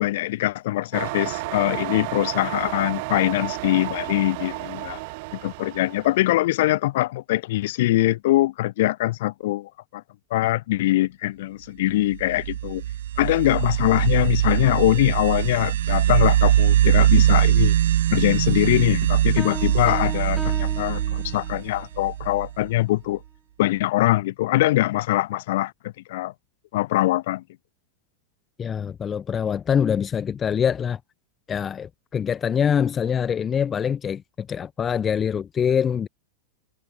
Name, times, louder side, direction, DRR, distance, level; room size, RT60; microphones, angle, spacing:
voice 1, 0.0-5.0 5.3-10.0 10.3-12.8 13.2-17.7 18.1-23.2 23.6-26.3 26.7-27.4, left 16 dB, 65° left, 3.2 m, -23 dB
sound 1, 0.9-6.2, right 27 dB, 50° right, 2.4 m, -32 dB
sound 2, 12.1-22.7, right 12 dB, 85° right, 0.8 m, -21 dB
sound 3, 19.4-21.8, equal, ahead, 1.6 m, -36 dB
voice 2, 28.6-31.0 31.5-36.1, left 7 dB, 20° left, 1.0 m, -24 dB
supercardioid pair, 155°, 0 cm